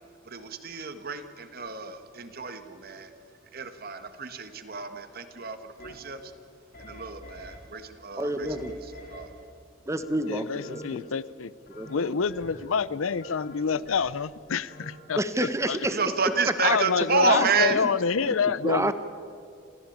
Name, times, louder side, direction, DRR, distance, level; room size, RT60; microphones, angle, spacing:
voice 1, 0.2-3.1 3.5-6.3 6.8-8.6 8.8-9.4 15.9-17.8, right 5 dB, 50° right, 9 dB, 1.5 m, -30 dB
sound 1, 5.8-5.9 6.7-7.6 8.4-9.2 10.0-10.9 11.7-12.8 13.2-14.1 14.7-15.0, left 1 dB, 50° left, 3.7 m, -45 dB
voice 2, 8.2-8.7 9.9-11.1 11.7-12.1 15.2-16.0 17.3-17.5 18.2-18.3 18.6-18.9, right 1 dB, 15° right, 11 dB, 1.1 m, -29 dB
voice 3, 10.3-11.5 11.9-15.8 16.6-18.9, left 6 dB, 85° left, 19 dB, 0.6 m, -27 dB
27.5 x 15.0 x 8.6 m, 2.4 s
head